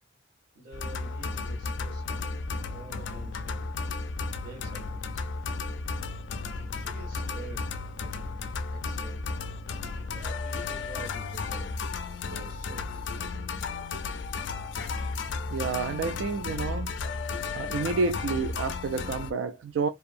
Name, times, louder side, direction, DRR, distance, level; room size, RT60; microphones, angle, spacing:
voice 1, 0.5-2.2 2.7-3.8 4.4-5.3 6.7-8.1 8.7-9.4 10.1-11.7 12.3-13.2, right 3 dB, 50° right, 0.9 m, -47 dB
sound 1, 0.7-19.3, left 4 dB, 65° left, 0.4 m, -34 dB
voice 2, 15.5-16.9 17.5-19.9, right 4 dB, 75° right, 0.3 m, -29 dB
2.6 x 2.3 x 2.5 m
head